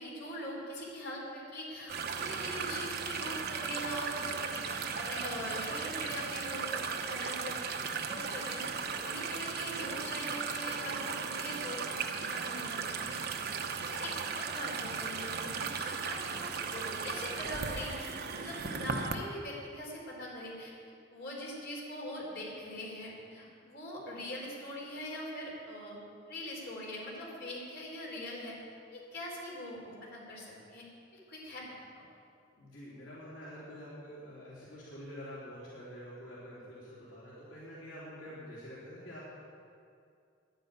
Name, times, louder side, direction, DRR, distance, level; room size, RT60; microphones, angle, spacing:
voice 1, 0.0-13.2 13.5-20.7 21.1-26.0 26.3-28.6 28.9-30.8 31.1-31.7 31.9-32.0, left 1 dB, 60° left, -4 dB, 4.5 m, -42 dB
sound 1, 1.9-19.2, right 5 dB, 55° right, 1.0 m, -36 dB
voice 2, 32.6-39.3, equal, 75° left, -9 dB, 3.6 m, -47 dB
11.0 x 10.5 x 9.3 m, 2.4 s
head